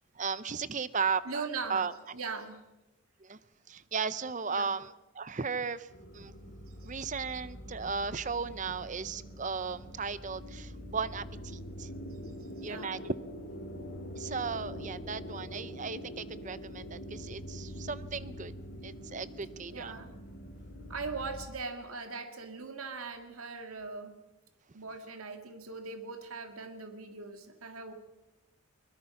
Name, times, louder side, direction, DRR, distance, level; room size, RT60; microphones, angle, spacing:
voice 1, 0.2-1.9 3.2-3.4 3.7-5.9 6.1-6.5 6.8-11.9 12.6-13.1 14.2-18.5 18.8-19.9, right 5 dB, 35° right, 16 dB, 0.7 m, -36 dB
voice 2, 1.3-1.9 2.1-2.6 4.5-4.8 6.8-6.9 12.6-12.9 19.7-20.1 20.9-24.2 24.7-27.9, right 4 dB, 85° right, 7 dB, 1.9 m, -40 dB
sound 1, 5.9-21.5, equal, 50° left, 2.5 m, -44 dB
23.0 x 20.0 x 5.9 m, 0.98 s
head